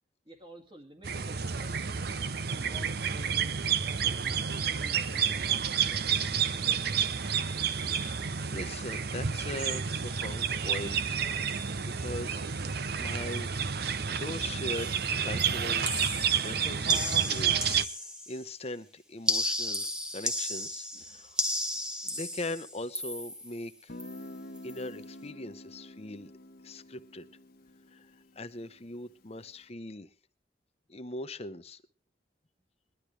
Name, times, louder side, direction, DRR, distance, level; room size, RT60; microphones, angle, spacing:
voice 1, 0.3-2.0 2.5-5.9 20.9-21.5 21.7-21.8, right 1 dB, 30° right, 5 dB, 2.2 m, -52 dB
sound 1, 1.0-17.8, right 7 dB, 60° right, 0.7 m, -30 dB
voice 2, 8.0-11.2 11.8-12.5 13.0-13.5 14.1-14.9 15.2-15.9 16.4-19.9 20.1-21.4 22.0-24.0 24.6-26.3 26.6-27.3 27.9-28.1 28.4-30.1 30.9-31.8, left 2 dB, 35° left, 10 dB, 0.9 m, -40 dB
sound 2, 14.8-15.1 15.4-18.5 19.3-23.6 24.0-24.3 24.6-24.8, left 1 dB, 5° right, 1.3 m, -34 dB
Guitar, 23.9-29.4, left 1 dB, 55° left, 1.2 m, -48 dB
21.0 x 12.0 x 3.2 m, 0.32 s
head